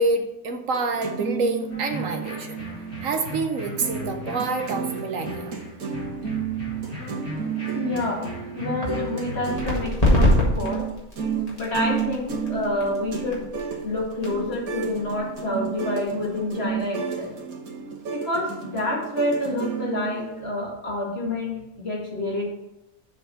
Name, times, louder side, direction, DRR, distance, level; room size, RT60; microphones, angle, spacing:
voice 1, 0.0-2.6 3.0-5.5, right 3 dB, 65° right, 5 dB, 1.1 m, -27 dB
sound 1, 0.7-3.3 3.6-20.4, right 6 dB, 85° right, 1.6 m, -32 dB
sound 2, 1.7-9.8, equal, 70° left, 3.2 m, -37 dB
voice 2, 7.7-10.9 11.6-13.4 13.8-17.3 18.1-22.4, left 2 dB, 45° left, -4 dB, 2.4 m, -28 dB
sound 3, 9.5-16.9, left 1 dB, 25° left, 1.9 m, -26 dB
7.4 x 4.2 x 6.5 m, 0.91 s
omnidirectional pair, 1.5 m